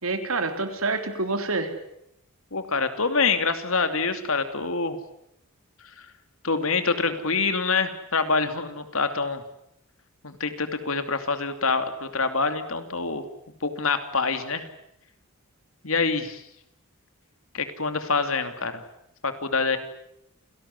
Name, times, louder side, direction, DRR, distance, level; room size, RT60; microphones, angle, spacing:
voice 1, 0.0-1.7, right 3 dB, 70° right, 7 dB, 3.6 m, -27 dB
voice 2, 2.5-5.0 6.4-9.4 10.2-13.2 13.6-14.7 15.8-16.4 17.5-18.8 19.2-19.8, left 4 dB, 70° left, 9 dB, 2.8 m, -26 dB
28.5 x 18.5 x 9.8 m, 0.78 s
head